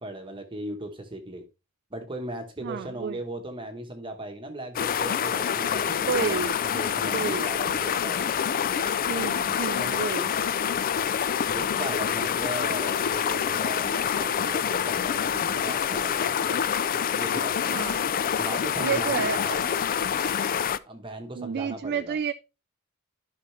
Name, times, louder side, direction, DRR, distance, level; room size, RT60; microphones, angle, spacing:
voice 1, 0.0-1.4 1.9-8.3 9.7-10.0 11.5-16.6 17.2-17.6 18.4-19.6 20.9-22.2, right 1 dB, 25° right, 1.1 m, -38 dB
voice 2, 2.6-3.2 6.1-6.6 7.1-7.5 9.1-10.3 17.7-18.0 18.8-19.6 21.4-22.3, right 6 dB, 50° right, 0.4 m, -30 dB
sound 1, 4.7-20.8, left 8 dB, 40° left, 0.3 m, -26 dB
12.0 x 5.3 x 3.2 m
head